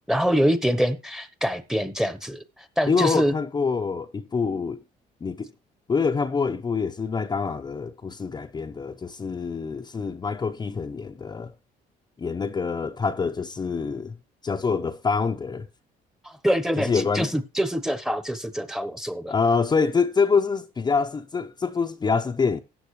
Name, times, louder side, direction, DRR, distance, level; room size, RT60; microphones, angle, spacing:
voice 1, 0.1-2.4 2.8-3.3 16.2-19.3, equal, 5° right, 1.1 m, -25 dB
voice 2, 2.9-4.8 5.2-5.5 5.9-11.5 12.2-14.2 14.4-15.7 16.8-17.3 19.3-22.6, left 5 dB, 25° left, 0.7 m, -25 dB
13.5 x 9.4 x 3.2 m
cardioid pair, 110°, 17 cm